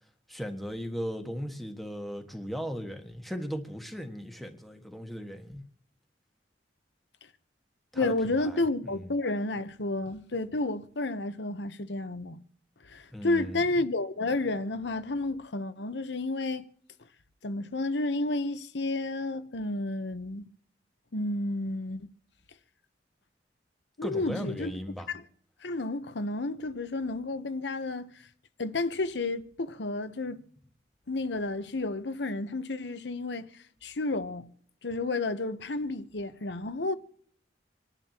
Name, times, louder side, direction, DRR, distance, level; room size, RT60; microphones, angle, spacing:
voice 1, 0.3-5.6 7.9-9.1 13.1-13.7 24.0-25.1, equal, ahead, 1.6 m, -37 dB
voice 2, 7.9-12.4 12.8-16.7 17.4-20.4 21.1-22.1 24.0-24.7 25.1-25.2 25.6-28.1 28.6-30.4 31.1-33.5 33.8-34.5 34.8-36.9, left 2 dB, 75° left, 1.0 m, -31 dB
27.0 x 11.0 x 3.0 m
head